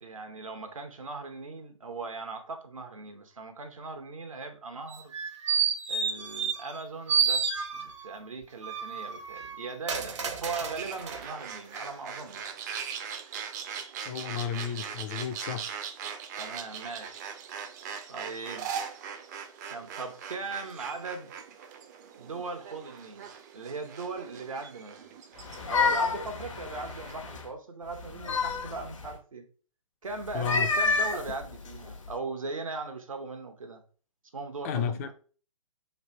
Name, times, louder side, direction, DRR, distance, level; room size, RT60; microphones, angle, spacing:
voice 1, 0.0-5.1 5.9-12.5 16.4-17.2 18.1-18.7 19.7-21.3 22.2-23.3 23.5-25.1 25.5-29.5 30.0-33.8 34.3-35.1, right 3 dB, 80° right, 1.0 m, -39 dB
sound 1, 4.9-6.8 7.1-8.1 8.6-11.2 11.7-11.8, right 6 dB, 60° right, 0.8 m, -30 dB
sound 2, 10.8-27.1, right 7 dB, 30° right, 0.5 m, -41 dB
voice 2, 14.1-15.7 30.3-30.7 34.6-35.1, left 8 dB, 25° left, 0.4 m, -32 dB
sound 3, 25.4-27.5 27.9-29.1 30.3-32.1, left 4 dB, 65° left, 0.9 m, -29 dB
3.2 x 2.6 x 4.2 m
figure-of-eight pair, 135°, 17 cm